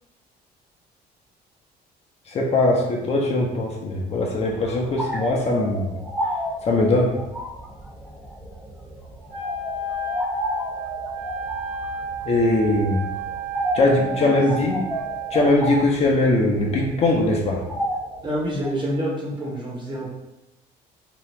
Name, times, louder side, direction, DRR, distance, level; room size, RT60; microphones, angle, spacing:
voice 1, 2.3-6.0 6.7-7.2 12.2-13.0 13.7-14.8 15.3-17.6, left 2 dB, 40° left, -1 dB, 0.6 m, -21 dB
sound 1, 4.4-18.7, right 1 dB, 5° right, 0.5 m, -32 dB
Wind instrument woodwind instrument, 9.3-15.5, right 3 dB, 70° right, 1.0 m, -32 dB
voice 2, 14.2-14.8 18.2-20.1, equal, 25° right, -3 dB, 1.0 m, -28 dB
2.9 x 2.3 x 3.3 m, 0.97 s
cardioid pair, 110°, 17 cm